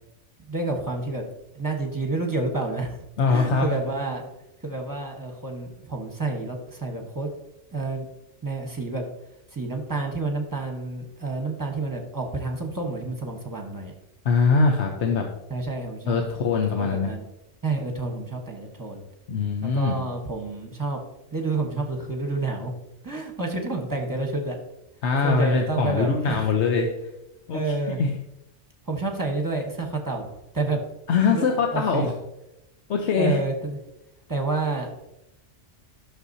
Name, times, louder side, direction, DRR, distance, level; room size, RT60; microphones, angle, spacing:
voice 1, 0.5-1.2 1.5-4.3 4.6-7.3 7.7-8.1 8.4-9.0 9.5-13.9 15.5-16.2 16.7-17.2 17.6-19.0 19.6-21.0 21.3-22.7 23.0-24.6 25.2-26.5 27.5-28.0 28.9-30.8 31.3-31.4 31.7-32.1 33.2-33.8 34.3-34.9, right 3 dB, 20° right, 2 dB, 1.1 m, -29 dB
voice 2, 3.2-3.7 14.2-15.3 16.1-17.1 19.3-20.0 25.0-26.9 27.5-27.6 28.0-28.2 31.1-32.1 32.9-33.4, left 4 dB, 70° left, 2 dB, 1.1 m, -22 dB
11.5 x 6.3 x 2.7 m, 0.87 s
omnidirectional pair, 1.2 m